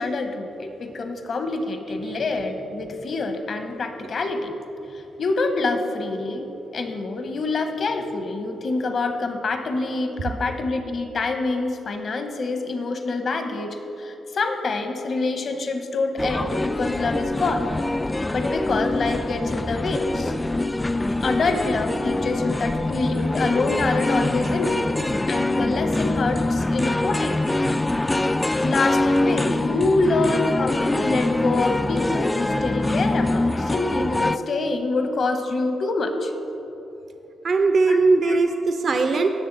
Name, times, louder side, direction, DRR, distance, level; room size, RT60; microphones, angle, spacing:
voice 1, 0.0-4.5 4.9-17.7 18.3-20.3 21.2-24.8 25.3-27.3 28.6-36.3 37.9-38.5, left 3 dB, 60° left, 7 dB, 1.1 m, -26 dB
sound 1, 16.2-34.4, left 2 dB, 20° left, 0.3 m, -24 dB
voice 2, 37.4-39.3, right 3 dB, 60° right, 6 dB, 0.7 m, -19 dB
18.0 x 6.5 x 4.1 m, 2.9 s
supercardioid pair, 60°, 0 cm